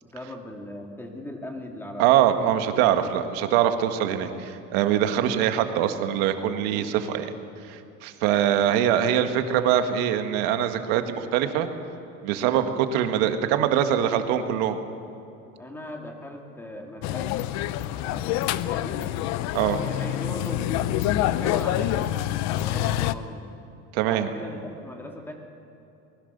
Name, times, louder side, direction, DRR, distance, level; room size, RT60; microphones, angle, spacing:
voice 1, 0.0-3.1 5.2-5.4 8.2-8.7 12.4-12.7 15.6-17.5 17.9-19.1 19.7-22.2 22.5-23.5 24.0-25.3, left 1 dB, 5° left, 2 dB, 2.4 m, -39 dB
voice 2, 2.0-7.3 7.7-11.7 12.2-14.8 19.5-19.8 23.9-24.3, right 10 dB, 90° right, 7 dB, 1.7 m, -23 dB
sound 1, 17.0-23.1, left 13 dB, 65° left, 0.8 m, -26 dB
23.0 x 20.5 x 6.8 m, 2.8 s
cardioid pair, 150°, 30 cm